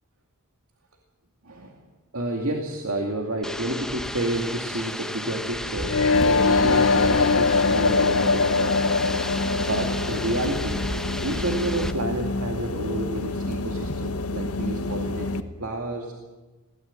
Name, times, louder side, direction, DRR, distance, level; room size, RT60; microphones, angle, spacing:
voice 1, 1.4-1.8 2.1-8.8 9.6-10.8 11.2-16.1, right 1 dB, 70° right, 3 dB, 2.4 m, -30 dB
sound 1, 3.4-11.9, left 1 dB, 5° left, 1.0 m, -33 dB
sound 2, 5.8-11.8, left 4 dB, 65° left, 0.6 m, -22 dB
sound 3, 6.1-15.4, left 2 dB, 80° left, 1.3 m, -29 dB
22.0 x 17.5 x 8.9 m, 1.2 s
head